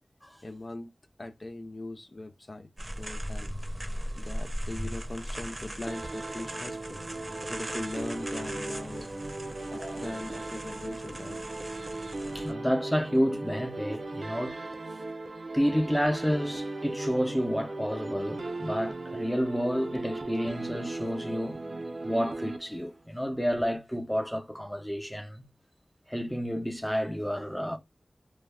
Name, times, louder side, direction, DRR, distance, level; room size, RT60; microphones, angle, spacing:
voice 1, 0.4-0.9 1.2-3.6 3.9-7.0 7.5-9.1 9.7-11.4, left 2 dB, 50° left, 0.3 m, -40 dB
sound 1, 2.8-12.5, equal, 30° right, 0.7 m, -39 dB
sound 2, 5.9-23.1, right 2 dB, 70° right, 0.4 m, -37 dB
voice 2, 12.3-14.6 15.5-21.6 22.0-25.5 26.1-27.8, equal, 5° left, 0.6 m, -30 dB
2.3 x 2.1 x 3.3 m
wide cardioid pair, 55°, 0 cm